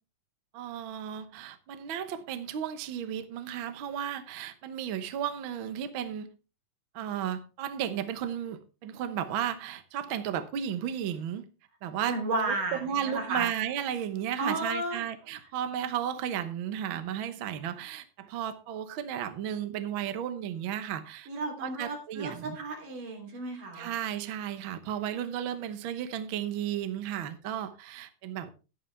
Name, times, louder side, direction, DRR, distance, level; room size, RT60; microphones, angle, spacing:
voice 1, 0.5-6.3 6.9-11.4 11.8-12.2 12.5-21.3 21.6-22.6 23.7-28.5, right 9 dB, 65° right, 1.2 m, -34 dB
voice 2, 12.1-13.5 14.4-15.0 21.3-23.9, right 2 dB, 85° right, 4.7 m, -33 dB
11.0 x 11.0 x 3.3 m
omnidirectional pair, 3.6 m